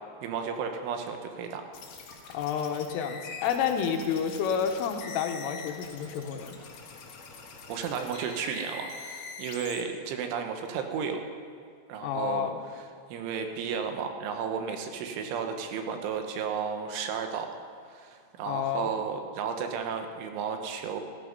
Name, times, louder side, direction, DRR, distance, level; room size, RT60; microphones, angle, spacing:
voice 1, 0.2-1.6 7.7-11.3 11.9-17.5 17.9-21.0, right 6 dB, 80° right, 5 dB, 3.5 m, -33 dB
sound 1, 1.7-9.8, left 4 dB, 60° left, 2.4 m, -44 dB
voice 2, 2.3-6.6 12.0-12.5 18.5-18.9, left 8 dB, 90° left, 5 dB, 3.7 m, -30 dB
15.5 x 14.0 x 5.4 m, 2.3 s
omnidirectional pair, 5.6 m